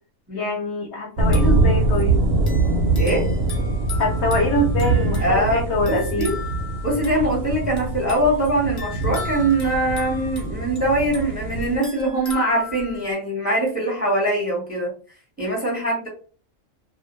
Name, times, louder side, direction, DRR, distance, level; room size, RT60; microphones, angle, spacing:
voice 1, 0.3-2.2 4.0-6.3, left 2 dB, 65° left, 3 dB, 0.8 m, -24 dB
sound 1, 1.2-13.1, left 3 dB, 30° left, 0.7 m, -38 dB
sound 2, 1.2-11.8, right 2 dB, 65° right, 0.7 m, -23 dB
voice 2, 5.2-6.3 6.8-14.9 15.4-16.1, right 1 dB, 10° right, -2 dB, 0.7 m, -22 dB
2.2 x 2.1 x 2.9 m, 0.39 s
omnidirectional pair, 1.4 m